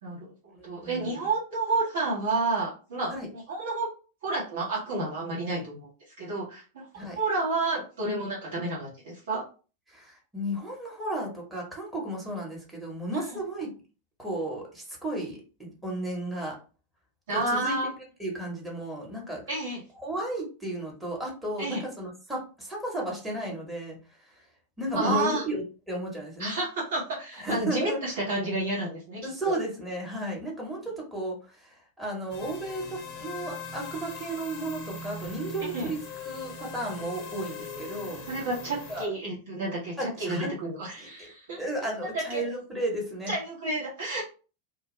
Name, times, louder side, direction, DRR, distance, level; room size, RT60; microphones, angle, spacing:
voice 1, 0.0-0.3 0.6-3.9 4.2-5.9 6.2-9.4 13.1-13.4 17.3-17.9 19.5-19.8 21.6-21.8 24.9-25.4 26.4-29.5 35.7-35.9 38.3-42.4 43.3-44.2, right 2 dB, 55° right, -5 dB, 1.0 m, -30 dB
voice 2, 0.6-1.1 3.1-3.3 6.9-7.2 9.9-13.7 14.2-16.6 17.3-17.8 18.2-19.4 20.0-24.0 24.8-26.6 27.4-28.0 29.2-38.2 38.9-39.1 40.0-40.5 41.0-41.3 41.6-43.3, right 1 dB, 5° right, -2 dB, 1.1 m, -34 dB
sound 1, 32.3-39.1, left 3 dB, 40° left, 0.6 m, -40 dB
2.3 x 2.2 x 3.1 m, 0.35 s
figure-of-eight pair, 90°, 0 cm